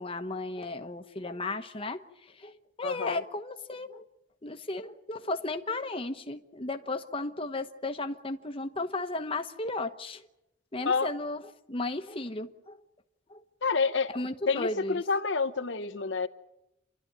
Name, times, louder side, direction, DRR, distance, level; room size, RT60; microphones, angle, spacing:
voice 1, 0.0-2.0 2.4-2.5 2.8-4.0 4.4-10.3 10.7-11.4 11.7-12.8 13.3-13.4 14.1-15.0, left 2 dB, 30° left, 1.1 m, -34 dB
voice 2, 2.8-3.2 10.9-11.1 13.6-14.1 14.5-16.3, left 4 dB, 80° left, 1.0 m, -28 dB
29.0 x 12.5 x 9.4 m
head